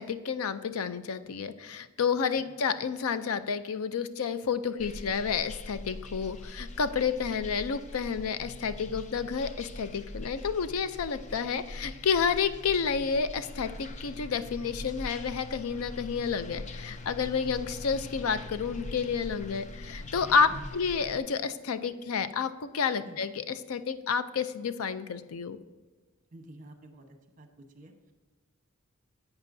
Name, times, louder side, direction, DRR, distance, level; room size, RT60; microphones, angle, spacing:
voice 1, 0.0-25.6, left 6 dB, 85° left, 12 dB, 0.5 m, -30 dB
sound 1, 4.8-21.2, left 2 dB, 35° left, 0.5 m, -42 dB
voice 2, 26.3-28.1, right 1 dB, 40° right, 5 dB, 1.0 m, -51 dB
11.0 x 8.1 x 2.6 m, 1.3 s
head